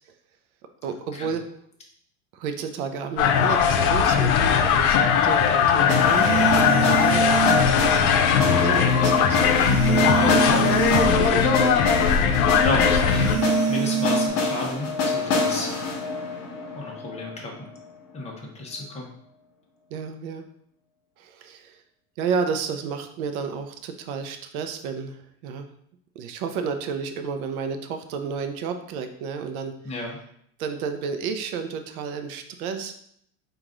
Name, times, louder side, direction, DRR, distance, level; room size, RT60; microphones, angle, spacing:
voice 1, 0.8-1.4 2.3-8.2 8.6-9.6 10.4-11.8 19.9-20.5 21.2-21.8 22.2-25.7 26.2-29.7 30.6-33.0, right 6 dB, 80° right, 7 dB, 0.7 m, -32 dB
sound 1, 3.2-13.4, left 7 dB, 75° left, 0.7 m, -20 dB
sound 2, 4.1-4.3 6.0-7.8 9.5-11.3 13.1-14.3, right 11 dB, 45° right, 0.6 m, -26 dB
sound 3, 5.9-17.8, left 4 dB, 55° left, 1.3 m, -27 dB
voice 2, 10.0-10.7 12.5-15.7 16.7-17.7 18.1-19.1 29.8-30.2, left 2 dB, 15° left, -1 dB, 0.9 m, -31 dB
4.8 x 2.5 x 3.7 m, 0.69 s
supercardioid pair, 140°, 42 cm